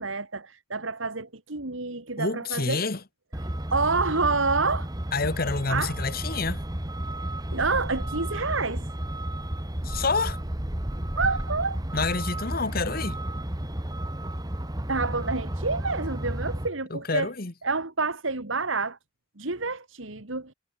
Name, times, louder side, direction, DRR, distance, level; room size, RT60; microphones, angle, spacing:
voice 1, 0.0-2.8 3.7-4.9 5.7-5.9 7.5-8.8 11.2-11.8 14.9-17.3 17.6-19.0 19.4-20.5, right 4 dB, 75° right, 2.6 m, -28 dB
voice 2, 2.2-3.0 5.1-6.6 9.8-10.4 11.9-13.2 16.9-17.5, left 4 dB, 45° left, 1.4 m, -28 dB
Truck, 3.3-16.7, right 1 dB, 20° right, 1.7 m, -32 dB
head